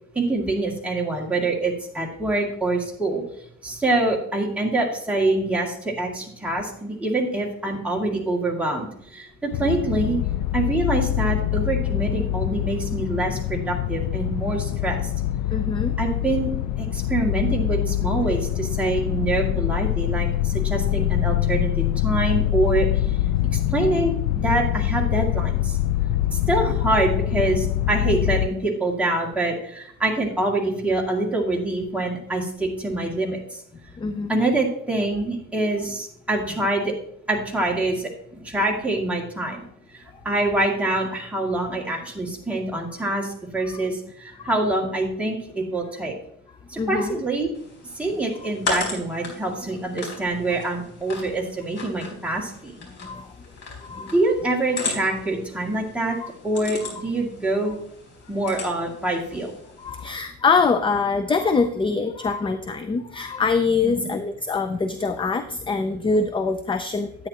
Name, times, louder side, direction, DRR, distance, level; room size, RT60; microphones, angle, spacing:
voice 1, 0.1-3.2 3.6-10.2 10.5-15.1 16.0-16.5 16.8-22.9 23.5-24.1 24.4-25.8 26.3-33.6 34.3-36.9 37.3-39.7 39.9-46.1 46.7-47.5 48.0-52.7 54.1-56.2 56.4-57.8 58.3-59.5 63.8-64.2, right 2 dB, 5° right, -3 dB, 2.2 m, -25 dB
sound 1, 9.5-28.5, left 13 dB, 75° left, 0.5 m, -24 dB
voice 2, 15.5-15.9 23.6-23.7 34.0-34.4 43.6-43.8 46.8-47.2 52.4-52.5 53.0-53.3 53.9-54.1 56.2-56.3 56.8-56.9 59.8-67.3, left 4 dB, 15° left, 9 dB, 0.4 m, -24 dB
sound 2, 47.5-60.1, left 3 dB, 60° left, 4.4 m, -36 dB
10.5 x 9.3 x 2.9 m, 0.71 s
cardioid pair, 145°, 30 cm